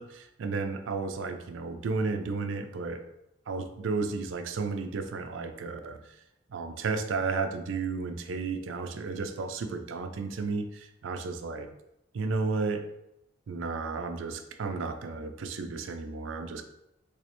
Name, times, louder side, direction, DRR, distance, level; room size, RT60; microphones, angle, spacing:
voice 1, 0.0-3.0 3.5-6.0 6.5-11.7 12.1-12.9 13.5-16.6, right 4 dB, 80° right, 8 dB, 0.4 m, -33 dB
3.2 x 3.1 x 3.0 m, 0.84 s
head